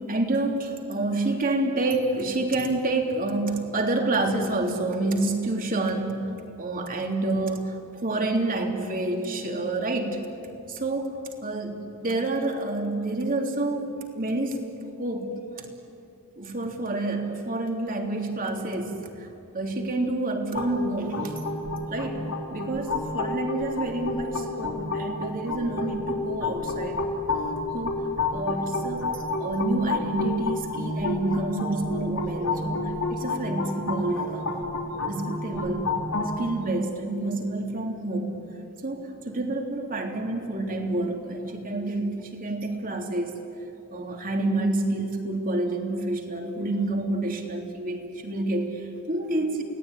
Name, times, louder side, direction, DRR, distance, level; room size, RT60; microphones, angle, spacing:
voice 1, 0.1-6.3 6.6-10.2 10.7-11.1 11.4-14.6 15.0-15.7 16.4-19.3 19.5-21.3 21.9-27.1 27.7-34.7 35.0-36.0 36.4-38.3 38.8-43.4 43.9-49.6, right 2 dB, 40° right, 3 dB, 3.1 m, -28 dB
sound 1, 20.5-36.3, left 3 dB, 85° left, 4.0 m, -30 dB
29.0 x 18.0 x 9.7 m, 2.7 s
head